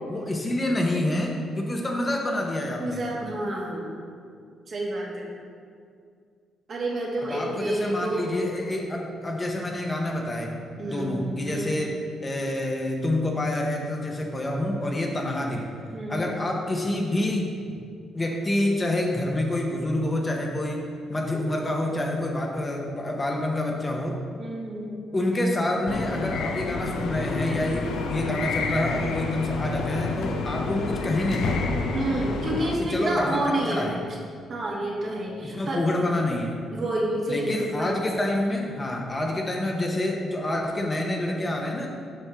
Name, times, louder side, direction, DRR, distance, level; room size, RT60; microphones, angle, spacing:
voice 1, 0.1-3.0 7.2-10.5 10.8-15.7 16.1-17.5 18.1-24.2 25.1-31.6 32.8-33.4 33.7-33.9 34.9-35.0 35.4-36.5 37.3-41.9, left 1 dB, 25° left, 1 dB, 0.8 m, -27 dB
voice 2, 2.8-3.9 4.7-5.3 6.7-8.3 10.8-11.8 15.9-16.3 24.4-25.2 30.3-30.6 31.9-33.9 34.5-35.8 36.7-38.0, right 1 dB, 45° right, -3 dB, 1.5 m, -29 dB
sound 1, 25.9-32.7, left 3 dB, 75° left, 0.6 m, -29 dB
7.3 x 5.3 x 3.5 m, 2.2 s
cardioid pair, 90°, 0 cm